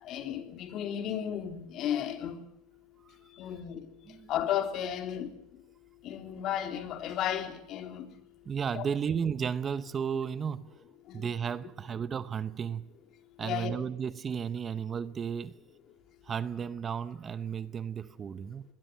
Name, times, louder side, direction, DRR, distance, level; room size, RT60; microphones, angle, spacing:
voice 1, 0.0-2.4 3.4-3.9 4.3-5.3 6.0-8.1 8.8-8.9 11.1-11.3 13.4-13.8, left 10 dB, 45° left, 3.5 m, -34 dB
voice 2, 8.5-10.7 11.1-12.9 13.4-15.6 16.2-18.6, right 7 dB, 25° right, 0.7 m, -34 dB
23.5 x 20.5 x 6.9 m
cardioid pair, 145°, 0 cm